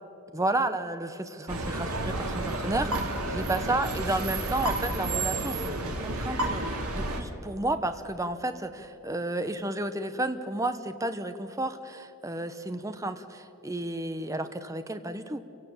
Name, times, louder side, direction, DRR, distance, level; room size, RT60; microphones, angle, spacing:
voice 1, 0.3-15.4, right 2 dB, 15° right, 9 dB, 0.8 m, -32 dB
sound 1, 1.5-7.2, right 2 dB, 80° right, 2.5 m, -31 dB
29.0 x 17.0 x 7.1 m, 2.8 s
head